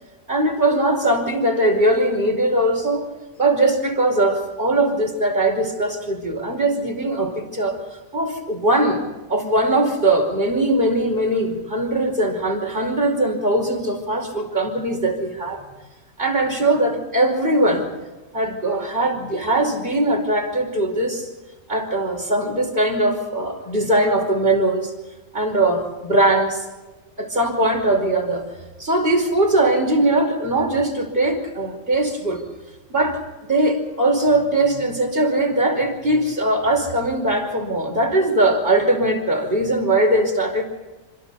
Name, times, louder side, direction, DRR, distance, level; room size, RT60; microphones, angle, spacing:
voice 1, 0.3-3.0 3.4-7.8 8.1-9.0 9.3-15.6 16.2-17.9 18.3-21.3 21.7-24.9 25.3-26.6 27.2-28.4 28.8-32.4 32.9-33.2 33.5-40.6, right 1 dB, 40° right, 1 dB, 5.3 m, -20 dB
26.5 x 26.5 x 4.2 m, 1.2 s
omnidirectional pair, 1.4 m